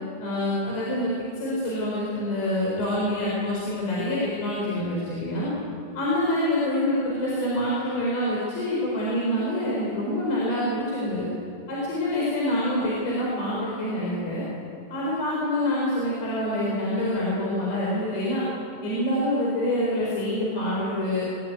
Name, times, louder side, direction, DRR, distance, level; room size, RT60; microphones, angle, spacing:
voice 1, 0.2-5.5 5.9-11.3 11.7-14.4 14.9-18.4 18.8-21.3, left 1 dB, 65° left, -5 dB, 6.6 m, -26 dB
22.0 x 20.0 x 9.4 m, 2.7 s
omnidirectional pair, 5.6 m